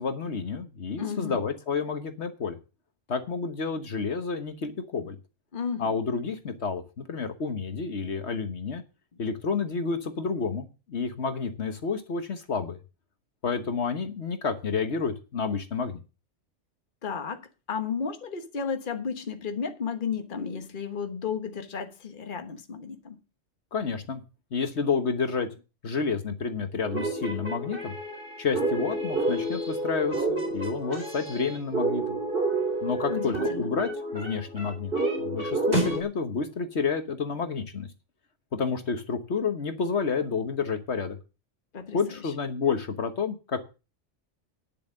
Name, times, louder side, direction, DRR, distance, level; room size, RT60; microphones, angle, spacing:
voice 1, 0.0-2.6 3.1-5.2 5.8-8.8 9.2-12.8 13.4-16.0 23.7-24.2 24.5-25.5 25.8-27.9 28.4-32.2 32.8-37.9 38.5-41.2 41.9-43.6, left 5 dB, 70° left, 1.5 m, -30 dB
voice 2, 1.0-1.4 5.5-5.9 17.0-23.2 33.1-33.7 41.7-42.0, left 6 dB, 45° left, 1.4 m, -33 dB
sound 1, 26.8-36.0, right 2 dB, 50° right, 3.5 m, -29 dB
10.0 x 7.1 x 6.5 m
omnidirectional pair, 1.2 m